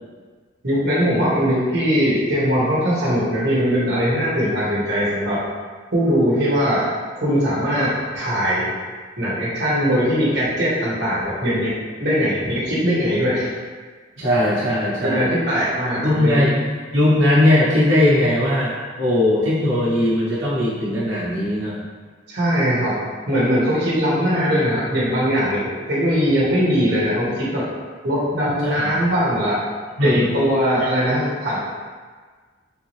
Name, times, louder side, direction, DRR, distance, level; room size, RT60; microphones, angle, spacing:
voice 1, 0.6-5.4 5.9-6.9 7.1-8.7 9.2-11.7 12.0-13.5 15.0-16.6 22.3-23.0 23.3-27.7 28.0-29.6 30.0-31.6, equal, 60° right, -7 dB, 1.1 m, -20 dB
voice 2, 14.2-15.4 16.0-16.6 16.9-21.8 28.6-28.9 30.0-30.2, left 1 dB, 90° right, -9 dB, 0.9 m, -19 dB
3.7 x 2.7 x 3.1 m, 1.5 s
head